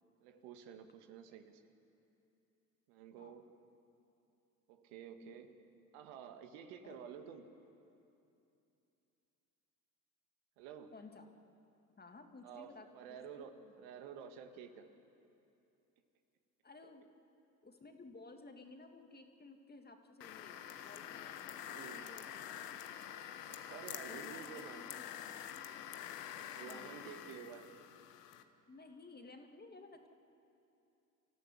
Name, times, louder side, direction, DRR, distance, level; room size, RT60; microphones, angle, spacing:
voice 1, 0.2-1.6 2.9-3.5 4.7-5.5 5.9-7.5 10.6-10.9 12.4-14.9 16.8-17.0 21.6-22.1 23.5-24.8 25.9-26.1 26.5-27.7, right 7 dB, 65° right, 6 dB, 1.9 m, -51 dB
voice 2, 10.9-11.3 12.0-13.7 16.6-17.0 17.6-22.7 24.1-25.4 26.6-27.3 28.7-30.1, left 3 dB, 20° left, 4 dB, 2.4 m, -56 dB
sound 1, 20.2-28.4, left 10 dB, 80° left, 1.4 m, -47 dB
27.5 x 14.0 x 10.0 m, 2.8 s
hypercardioid pair, 70°, 47 cm